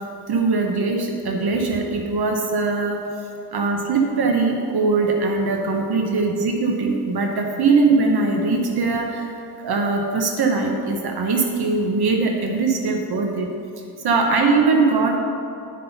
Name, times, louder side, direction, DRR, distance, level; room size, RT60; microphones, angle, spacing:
voice 1, 0.3-3.0 3.5-13.5 14.0-15.2, right 3 dB, 70° right, 2 dB, 1.0 m, -21 dB
9.7 x 5.5 x 5.8 m, 2.7 s
wide cardioid pair, 145°, 39 cm